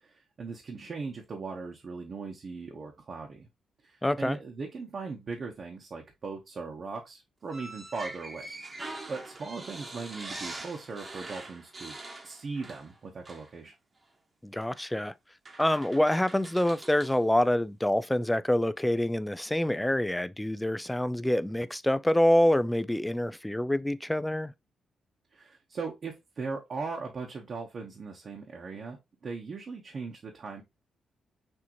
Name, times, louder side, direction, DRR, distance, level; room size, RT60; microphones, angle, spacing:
voice 1, 0.0-3.5 3.8-8.5 9.1-12.0 12.2-13.7 25.3-29.0 29.2-30.6, right 4 dB, 50° right, 1.1 m, -39 dB
voice 2, 4.0-4.4 14.4-15.1 15.6-24.5, left 1 dB, 5° left, 0.3 m, -26 dB
sound 1, 7.5-13.0 13.2-13.5 14.7-14.9 15.4-17.2, right 2 dB, 30° right, 1.1 m, -43 dB
6.2 x 2.9 x 3.0 m
cardioid pair, 90°, 0 cm